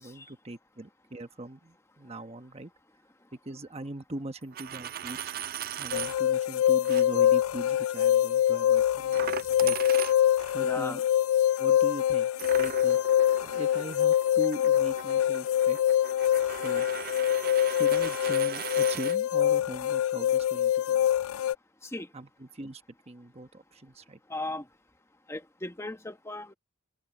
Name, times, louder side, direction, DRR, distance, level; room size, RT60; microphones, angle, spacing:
voice 1, 0.0-2.7 3.3-5.3 5.8-9.8 10.5-11.0 11.6-13.0 13.4-15.8 16.4-16.9 17.6-21.2 22.1-24.2, right 1 dB, 30° right, 1.1 m, -41 dB
Coin (dropping), 4.4-6.2 6.8-7.0 9.1-10.5 12.4-19.2, right 9 dB, 45° right, 0.4 m, -39 dB
sound 1, 5.9-21.5, left 11 dB, 80° left, 0.3 m, -25 dB
voice 2, 10.6-11.0 21.8-22.1 24.3-24.6 25.3-26.5, left 2 dB, 15° left, 1.2 m, -37 dB
head